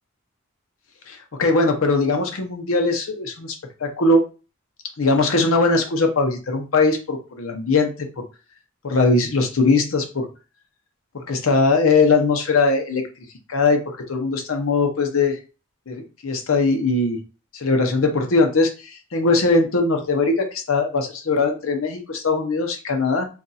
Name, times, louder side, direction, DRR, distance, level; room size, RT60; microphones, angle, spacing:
voice 1, 1.1-3.5 3.8-4.2 5.0-8.1 8.8-10.3 11.1-13.0 13.5-15.4 15.9-17.2 17.5-23.3, left 3 dB, 80° left, 4 dB, 0.7 m, -20 dB
2.5 x 2.4 x 4.0 m, 0.33 s
head